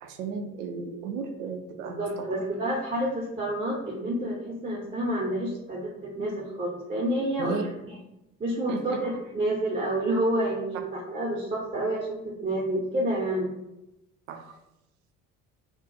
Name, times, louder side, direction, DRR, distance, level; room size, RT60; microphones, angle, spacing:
voice 1, 0.0-2.3 7.4-7.6 8.7-9.0 14.3-14.6, right 5 dB, 70° right, 6 dB, 0.5 m, -35 dB
voice 2, 1.8-7.7 8.4-10.8 11.1-13.5, right 1 dB, 20° right, -4 dB, 0.8 m, -29 dB
2.4 x 2.3 x 3.8 m, 0.92 s
figure-of-eight pair, 50°, 41 cm